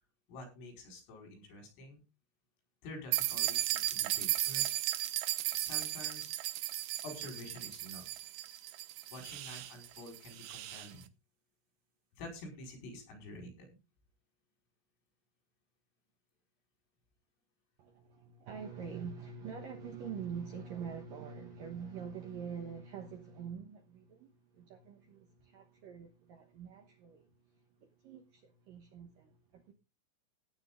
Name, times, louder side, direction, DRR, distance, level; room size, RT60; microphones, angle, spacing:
voice 1, 0.3-2.0 2.8-4.7 5.6-6.3 7.0-8.1 9.1-11.1 12.2-13.7, left 1 dB, 80° left, 7.5 m, -48 dB
sound 1, 3.1-10.9, right 15 dB, 90° right, 2.2 m, -35 dB
voice 2, 17.8-29.7, right 6 dB, 70° right, 2.1 m, -45 dB
17.0 x 9.0 x 3.7 m
omnidirectional pair, 5.8 m